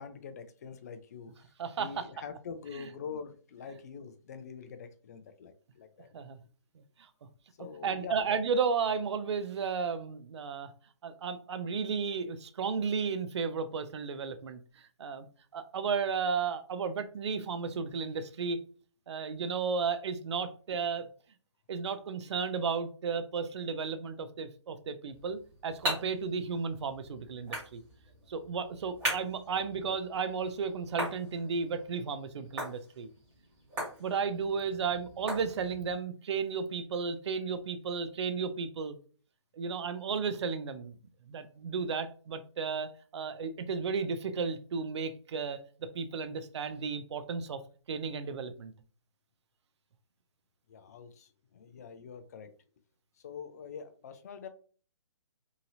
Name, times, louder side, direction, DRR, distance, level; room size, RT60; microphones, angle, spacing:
voice 1, 0.0-1.3 1.8-6.1 7.6-8.2 50.7-52.5 53.2-54.5, left 6 dB, 30° left, 0.3 m, -44 dB
voice 2, 1.6-2.1 2.7-2.9 6.1-6.4 7.0-7.1 7.8-10.7 11.0-14.6 15.0-15.3 15.5-18.6 19.1-21.1 21.7-27.8 28.3-33.1 34.0-39.0 39.5-41.0 41.3-45.6 45.9-47.6 47.9-48.7, right 5 dB, 60° right, 0.5 m, -33 dB
sound 1, 25.1-36.0, right 1 dB, 20° right, 1.6 m, -41 dB
2.8 x 2.8 x 2.6 m
hypercardioid pair, 155°, 16 cm